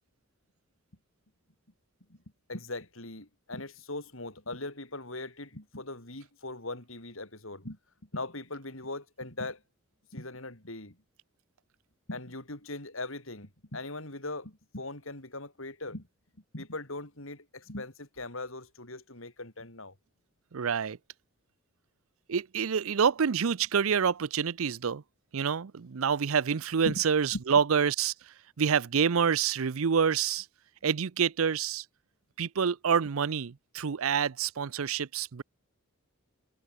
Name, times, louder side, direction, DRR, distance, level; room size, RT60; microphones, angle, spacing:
voice 1, 2.5-7.8 8.1-9.6 10.1-11.0 12.1-16.1 16.5-19.9 26.8-27.0 27.3-27.4, left 2 dB, 65° left, 5.9 m, -40 dB
voice 2, 20.5-21.0 22.3-25.0 25.3-28.1 28.6-30.5 30.8-31.8 32.4-35.4, right 7 dB, 75° right, 0.6 m, -27 dB
head